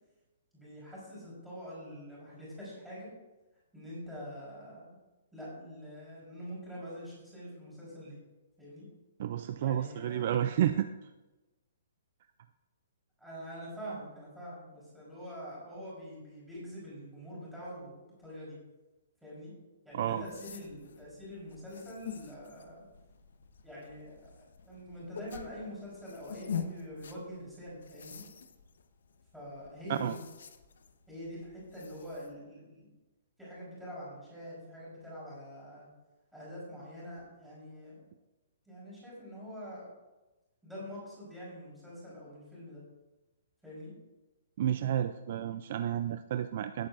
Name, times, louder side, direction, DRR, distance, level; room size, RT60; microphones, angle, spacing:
voice 1, 0.5-3.1 3.7-5.0 5.3-8.2 8.6-8.9 9.6-10.6 13.2-18.6 19.2-19.5 19.8-22.8 23.6-28.2 29.3-30.2 31.1-32.9 33.4-35.9 36.3-38.0 38.7-39.9 40.6-42.8 43.6-43.9, equal, ahead, -9 dB, 4.0 m, -45 dB
voice 2, 9.2-10.9 19.9-20.2 29.9-30.1 44.6-46.9, right 10 dB, 40° right, 10 dB, 0.3 m, -31 dB
sound 1, 19.9-32.3, left 6 dB, 75° left, 1.0 m, -46 dB
17.5 x 8.6 x 2.5 m, 1.1 s
hypercardioid pair, 175°, 0 cm